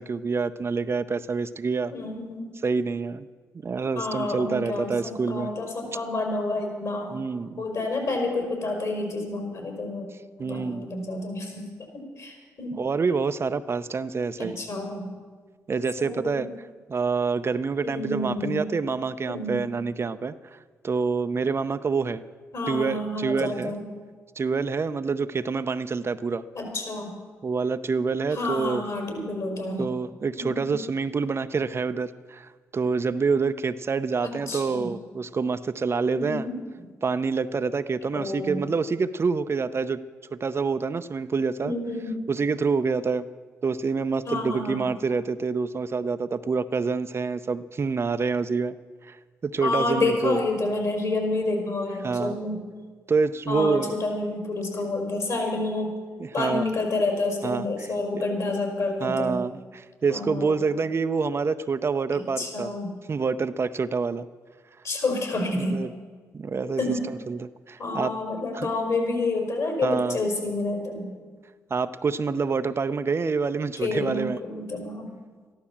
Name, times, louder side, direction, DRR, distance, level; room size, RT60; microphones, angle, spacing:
voice 1, 0.0-1.9 2.6-3.3 3.6-5.5 7.1-7.6 10.4-10.9 12.8-14.6 15.7-16.5 16.9-20.6 20.8-22.2 22.7-23.7 24.4-26.4 27.4-28.8 29.8-36.5 37.0-40.0 40.3-41.7 42.3-43.3 43.6-48.8 49.0-49.2 49.4-50.4 52.0-52.4 53.1-54.0 56.2-56.6 57.4-57.9 58.1-58.2 59.0-62.7 63.1-64.3 65.5-65.9 66.3-66.8 67.3-68.1 68.5-68.7 69.8-70.2 71.7-74.4, right 4 dB, 45° right, 11 dB, 0.7 m, -27 dB
voice 2, 1.9-2.5 3.9-7.1 7.6-10.0 10.4-12.8 14.4-15.1 16.0-16.5 17.8-18.7 19.2-19.6 22.5-23.8 26.5-27.1 28.3-29.9 30.4-30.7 34.2-34.9 36.2-36.6 38.1-38.7 41.6-42.2 44.2-44.9 49.6-52.6 53.5-55.9 56.3-59.3 60.1-60.6 62.4-62.9 64.8-65.8 66.8-67.1 67.8-71.1 73.8-75.1, left 2 dB, 60° left, 2 dB, 4.9 m, -29 dB
14.0 x 12.0 x 7.3 m, 1.5 s
supercardioid pair, 60°, 6 cm